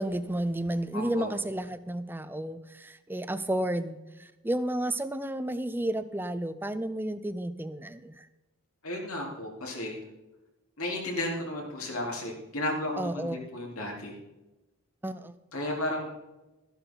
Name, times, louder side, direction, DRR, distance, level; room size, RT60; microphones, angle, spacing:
voice 1, 0.0-8.3 13.0-13.5 15.0-15.3, right 1 dB, 10° right, 12 dB, 0.5 m, -32 dB
voice 2, 0.9-1.3 8.8-10.0 10.8-14.2 15.5-16.1, left 1 dB, 80° left, -1 dB, 3.9 m, -33 dB
14.0 x 11.5 x 4.0 m, 1.0 s
head